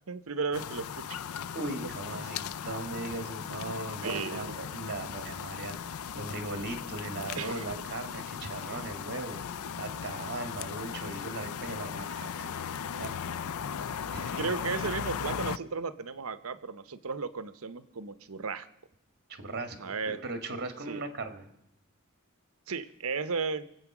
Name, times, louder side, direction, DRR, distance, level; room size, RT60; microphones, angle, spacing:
voice 1, 0.1-1.2 1.8-2.2 4.0-4.6 5.3-5.5 7.3-7.8 14.4-18.7 19.8-20.2 20.9-21.0 22.7-23.6, right 4 dB, 70° right, 13 dB, 0.8 m, -35 dB
sound 1, 0.5-15.6, left 7 dB, 80° left, 0.5 m, -37 dB
voice 2, 1.5-9.4 9.8-12.5 13.0-13.1 14.1-14.9 19.3-21.5, right 2 dB, 50° right, 8 dB, 1.8 m, -39 dB
24.5 x 8.2 x 6.0 m, 0.79 s
head